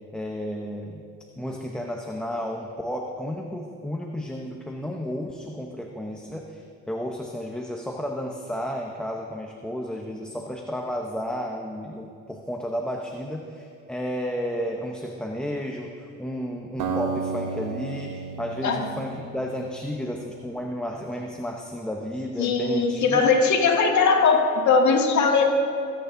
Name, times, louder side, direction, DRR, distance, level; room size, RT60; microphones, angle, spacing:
voice 1, 0.1-1.0 1.4-23.3, equal, 5° left, 0 dB, 0.8 m, -32 dB
Acoustic guitar, 16.8-20.0, right 5 dB, 85° right, 1.2 m, -32 dB
voice 2, 22.4-25.5, left 4 dB, 70° left, 1 dB, 1.9 m, -20 dB
23.5 x 9.1 x 2.7 m, 2.7 s
cardioid pair, 90°, 30 cm